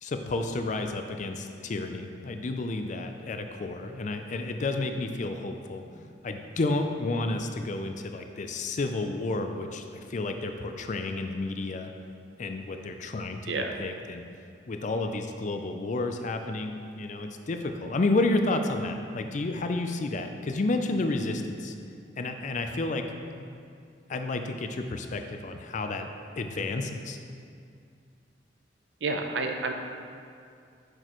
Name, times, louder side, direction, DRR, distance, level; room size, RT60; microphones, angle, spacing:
voice 1, 0.0-11.9 12.4-14.2 14.7-21.7 22.2-23.0 23.3-23.5 24.1-26.1 26.4-27.2, left 2 dB, 45° left, 6 dB, 0.4 m, -31 dB
voice 2, 29.0-29.7, right 3 dB, 80° right, 4 dB, 0.6 m, -29 dB
6.6 x 6.2 x 3.0 m, 2.4 s
head